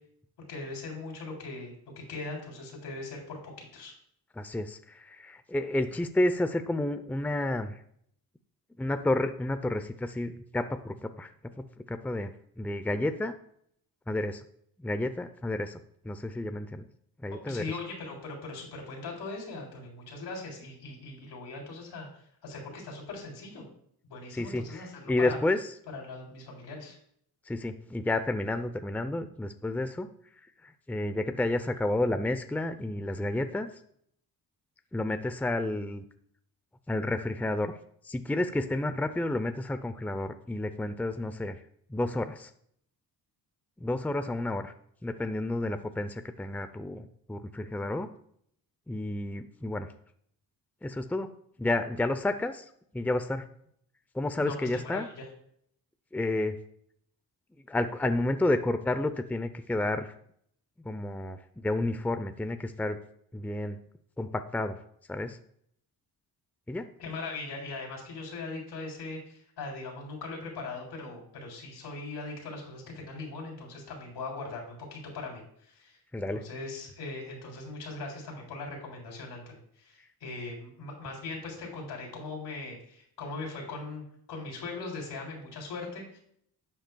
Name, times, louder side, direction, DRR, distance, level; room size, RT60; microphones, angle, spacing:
voice 1, 0.5-3.9 17.3-22.1 22.4-23.6 24.0-25.4 25.9-27.0 54.4-55.3 67.0-76.0 76.3-84.0 84.3-86.2, left 3 dB, 85° left, -1 dB, 3.4 m, -40 dB
voice 2, 4.4-7.8 8.8-11.3 11.6-12.3 12.6-13.3 14.1-14.4 14.8-16.8 17.2-17.6 24.3-25.6 27.5-30.1 30.6-33.7 34.9-36.0 36.9-37.7 38.0-41.6 41.9-42.5 43.8-44.7 45.0-48.1 48.9-49.9 50.8-51.3 51.6-52.7 52.9-53.5 54.1-55.1 56.1-56.6 57.7-60.1 60.8-63.0 63.3-63.8 64.2-64.8 65.1-65.4 66.7-66.9 76.1-76.4, left 2 dB, 5° left, 9 dB, 0.6 m, -30 dB
11.5 x 7.8 x 2.3 m, 0.67 s
cardioid pair, 80°, 40 cm